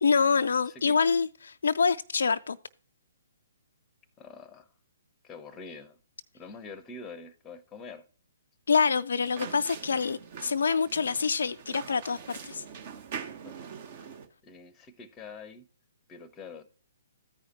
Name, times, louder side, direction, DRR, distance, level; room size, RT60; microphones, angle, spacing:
voice 1, 0.0-2.6 8.7-12.6, left 5 dB, 70° left, 0.3 m, -26 dB
voice 2, 0.7-1.0 4.2-4.7 5.2-6.0 6.3-8.0 13.4-13.6 13.9-14.2 14.4-15.7 16.1-16.6, left 4 dB, 20° left, 0.7 m, -45 dB
sound 1, 9.2-14.3, right 7 dB, 45° right, 0.9 m, -43 dB
14.0 x 4.9 x 2.9 m
figure-of-eight pair, 130°, 0 cm